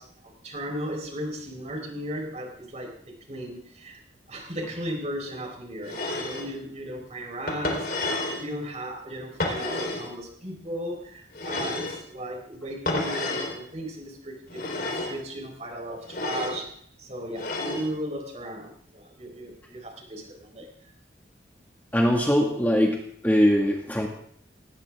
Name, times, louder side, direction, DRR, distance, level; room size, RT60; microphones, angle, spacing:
voice 1, 0.0-4.0 4.3-20.7, equal, 35° right, 2 dB, 4.3 m, -36 dB
sound 1, 5.8-6.5 7.5-8.4 9.4-10.1 11.3-12.0 12.9-13.6 14.5-15.2 16.0-16.6 17.3-17.9, left 2 dB, 50° left, 3.9 m, -30 dB
voice 2, 21.9-24.1, equal, 10° left, 0 dB, 1.8 m, -22 dB
18.5 x 17.5 x 3.6 m, 0.64 s
head